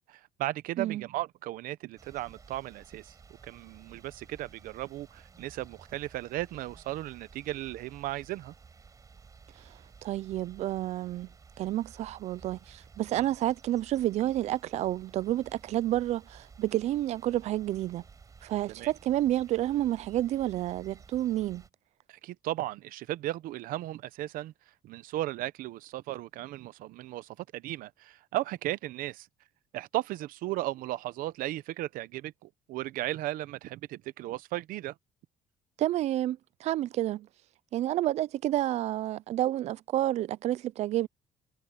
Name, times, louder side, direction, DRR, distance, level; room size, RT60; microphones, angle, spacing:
voice 1, 0.0-3.1 3.4-8.5 13.1-13.3 18.7-18.9 22.1-24.5 24.8-29.3 29.7-34.9, right 16 dB, 80° right, 0.8 m, -36 dB
sound 1, 2.0-21.7, right 5 dB, 25° right, 4.4 m, -54 dB
voice 2, 10.0-11.3 11.6-18.0 18.4-21.6 35.8-37.3 37.7-41.1, right 14 dB, 50° right, 0.4 m, -30 dB
cardioid pair, 160°, 14 cm